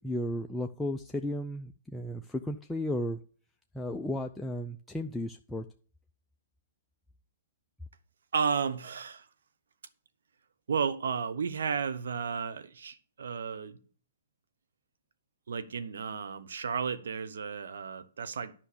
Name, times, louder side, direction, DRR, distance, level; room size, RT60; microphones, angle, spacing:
voice 1, 0.0-3.2 3.7-5.7, left 1 dB, 5° left, 0.5 m, -34 dB
voice 2, 8.3-9.2 10.7-13.8 15.5-18.5, right 6 dB, 75° right, 1.0 m, -33 dB
10.5 x 5.7 x 6.8 m
hypercardioid pair, 125°, 0 cm